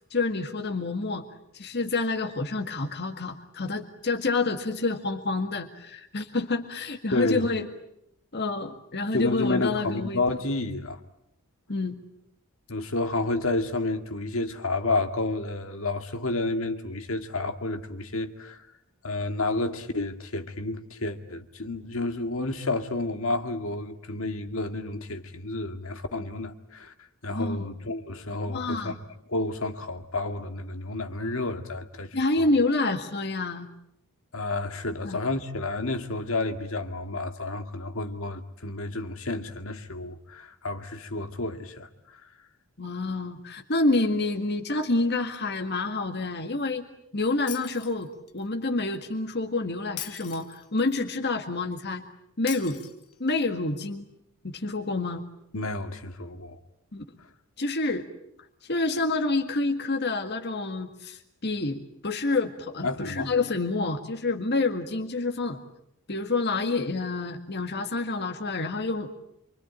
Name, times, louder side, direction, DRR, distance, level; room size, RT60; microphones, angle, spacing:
voice 1, 0.1-1.2 1.5-7.7 8.3-10.2 11.7-12.0 27.3-27.7 28.5-29.0 32.1-33.7 35.0-35.2 42.8-46.9 47.1-52.0 52.4-52.8 53.2-54.1 54.4-55.2 56.9-57.0 57.6-58.0 58.6-65.6 66.1-69.1, left 3 dB, 50° left, 1.8 m, -28 dB
voice 2, 7.1-7.4 9.1-11.0 12.7-18.6 19.0-26.9 27.2-28.9 29.3-32.5 34.3-41.9 55.5-56.6 62.8-63.3, left 2 dB, 65° left, 2.1 m, -30 dB
Shatter, 47.5-48.4 50.0-51.0 52.5-53.5, left 12 dB, 85° left, 1.9 m, -40 dB
27.5 x 24.5 x 8.8 m
head